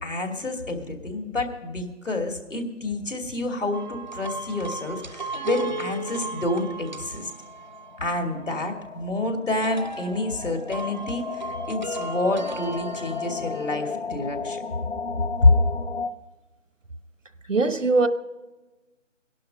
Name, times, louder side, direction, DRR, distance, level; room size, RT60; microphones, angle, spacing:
voice 1, 0.0-7.3 8.0-14.6 15.4-15.5, left 2 dB, 75° left, 2.8 m, -27 dB
sound 1, 3.7-8.4 9.6-13.7, right 3 dB, 40° right, 0.7 m, -36 dB
sound 2, 6.4-6.5 6.7-6.8 7.0-16.1, left 5 dB, 55° left, 0.8 m, -35 dB
voice 2, 17.5-18.1, right 3 dB, 75° right, 1.2 m, -20 dB
19.5 x 11.5 x 5.3 m
figure-of-eight pair, 160°, 38 cm